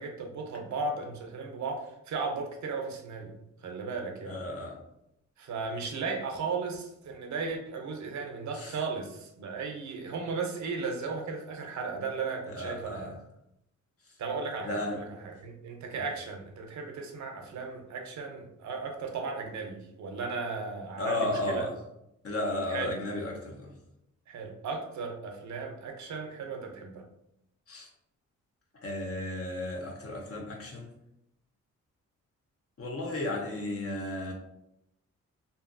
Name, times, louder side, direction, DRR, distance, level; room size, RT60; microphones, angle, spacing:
voice 1, 0.0-3.4 3.6-4.4 5.4-13.2 14.2-21.6 22.7-23.1 24.3-27.0, right 4 dB, 70° right, 3 dB, 0.6 m, -36 dB
voice 2, 4.2-4.8 8.6-8.7 12.5-13.1 14.6-15.0 21.0-21.7 22.2-23.7 27.7-27.9 28.8-30.9 32.8-34.3, left 1 dB, 50° left, 0 dB, 0.8 m, -33 dB
2.6 x 2.6 x 2.5 m, 0.82 s
cardioid pair, 75°, 30 cm